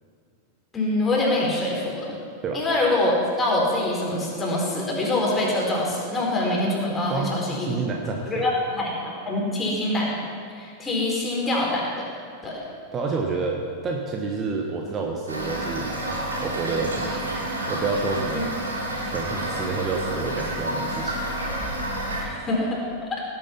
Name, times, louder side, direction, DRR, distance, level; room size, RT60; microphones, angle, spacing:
voice 1, 0.7-2.2 2.5-7.8 8.3-10.2 10.5-11.9 12.4-12.6 18.3-18.4 22.2-22.8 23.1-23.2, left 1 dB, 15° left, -3 dB, 4.4 m, -25 dB
voice 2, 7.1-8.4 12.9-15.9 16.4-18.4 19.1-21.2, right 4 dB, 25° right, 0 dB, 1.4 m, -29 dB
Toilet flush / Fill (with liquid), 15.3-22.2, right 1 dB, 80° right, 3.2 m, -29 dB
18.0 x 9.2 x 5.9 m, 2.4 s
figure-of-eight pair, 90°, 0 cm